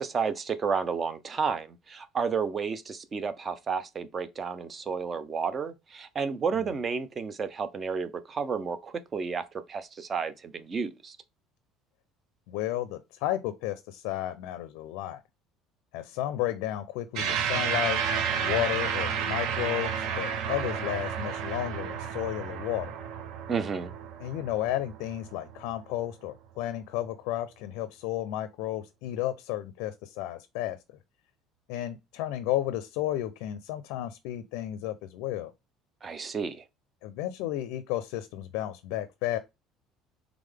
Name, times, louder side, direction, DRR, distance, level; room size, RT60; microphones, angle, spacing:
voice 1, 0.0-9.4 9.7-11.2 23.5-23.9 36.0-36.6, right 5 dB, 20° right, 0.4 m, -31 dB
voice 2, 12.5-15.2 15.9-18.0 18.4-22.9 24.2-31.0 31.7-35.5 37.0-39.4, left 13 dB, 85° left, 0.5 m, -33 dB
sound 1, 17.2-25.8, right 7 dB, 60° right, 0.7 m, -31 dB
3.8 x 3.4 x 3.4 m
cardioid pair, 175°, 0 cm